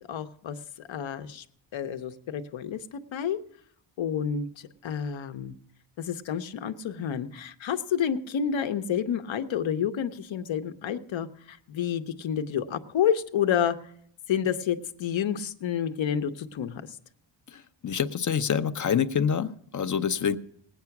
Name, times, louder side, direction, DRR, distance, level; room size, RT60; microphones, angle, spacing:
voice 1, 0.1-0.6 0.9-1.4 1.7-3.4 4.0-5.5 6.0-13.8 14.3-16.8, left 8 dB, 65° left, 9 dB, 1.0 m, -29 dB
voice 2, 17.5-20.4, left 7 dB, 40° left, 11 dB, 0.7 m, -27 dB
19.0 x 8.9 x 5.9 m, 0.66 s
wide cardioid pair, 140°, 49 cm